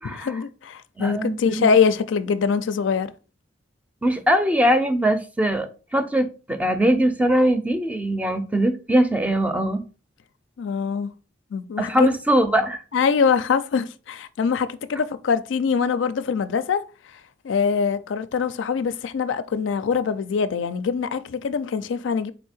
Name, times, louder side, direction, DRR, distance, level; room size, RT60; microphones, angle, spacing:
voice 1, 0.0-3.1 10.6-11.1 11.5-12.1 12.9-17.2 17.4-22.3, left 6 dB, 75° left, 0.4 m, -23 dB
voice 2, 1.0-1.7 4.0-9.8 11.8-12.8, right 1 dB, 10° right, 0.5 m, -21 dB
4.2 x 2.7 x 4.2 m
head